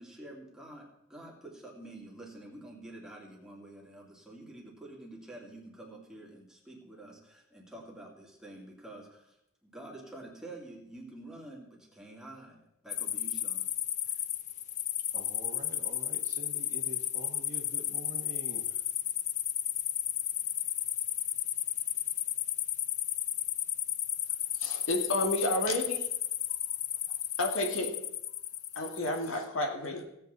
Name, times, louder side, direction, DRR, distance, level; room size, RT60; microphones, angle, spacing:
voice 1, 0.0-9.4 9.6-13.7 14.1-14.2, right 1 dB, 5° right, -3 dB, 2.5 m, -48 dB
sound 1, 12.9-29.3, left 12 dB, 35° left, 0.4 m, -33 dB
voice 2, 15.1-18.8, right 2 dB, 40° right, 4 dB, 1.3 m, -46 dB
voice 3, 24.6-26.0 27.4-27.9 28.8-30.0, left 1 dB, 85° left, 3 dB, 2.1 m, -31 dB
16.5 x 8.2 x 4.0 m, 0.81 s
head